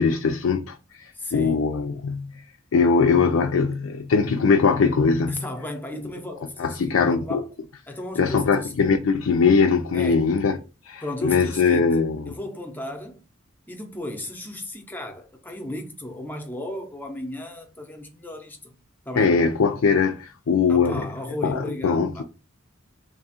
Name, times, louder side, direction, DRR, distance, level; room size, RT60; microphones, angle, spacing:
voice 1, 0.0-2.4 2.7-5.4 6.6-7.4 8.2-10.6 10.8-12.2 19.2-21.1 21.4-22.2, left 5 dB, 85° left, 0.4 m, -21 dB
voice 2, 1.1-1.7 5.3-7.5 7.9-8.7 9.9-10.2 11.0-11.9 12.3-13.2 13.7-18.8 19.1-19.3 20.7-22.2, left 1 dB, 10° left, 0.6 m, -34 dB
3.3 x 2.3 x 4.1 m
head